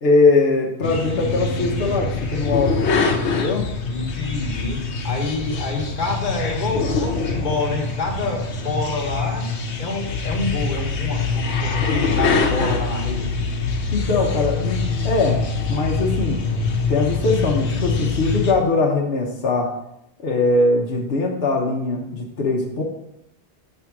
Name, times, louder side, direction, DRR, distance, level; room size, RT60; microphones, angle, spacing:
voice 1, 0.0-2.8 3.3-3.6 13.9-15.4 15.7-16.4 16.9-19.7 20.2-22.8, left 3 dB, 65° left, -1 dB, 1.2 m, -21 dB
sound 1, 0.8-18.5, left 4 dB, 85° left, 1.1 m, -24 dB
voice 2, 3.9-4.8 5.0-9.4 9.8-13.3, left 3 dB, 45° left, -1 dB, 1.5 m, -27 dB
6.5 x 3.6 x 5.9 m, 0.82 s
omnidirectional pair, 1.1 m